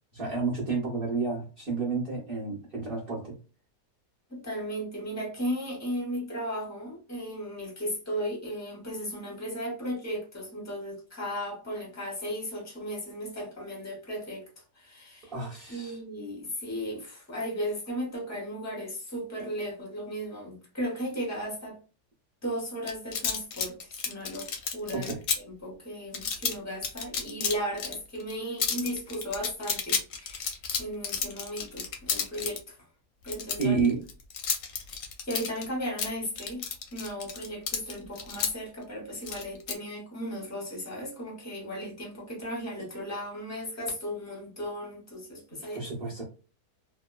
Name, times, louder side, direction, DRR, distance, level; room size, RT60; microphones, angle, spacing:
voice 1, 0.1-3.4 15.2-16.0 24.9-25.2 33.6-34.0 45.7-46.2, right 4 dB, 50° right, 0.7 m, -30 dB
voice 2, 4.3-15.3 15.7-21.8 22.4-25.1 25.3-32.8 33.2-33.7 35.2-36.6 36.9-45.8, equal, 20° left, 0.4 m, -36 dB
sound 1, 22.9-25.4 26.1-26.5 26.8-27.9 28.2-28.3 28.6-32.6 33.3-35.6 36.0-38.5 39.3-39.7, left 6 dB, 70° left, 0.8 m, -31 dB
2.9 x 2.1 x 2.2 m
omnidirectional pair, 1.8 m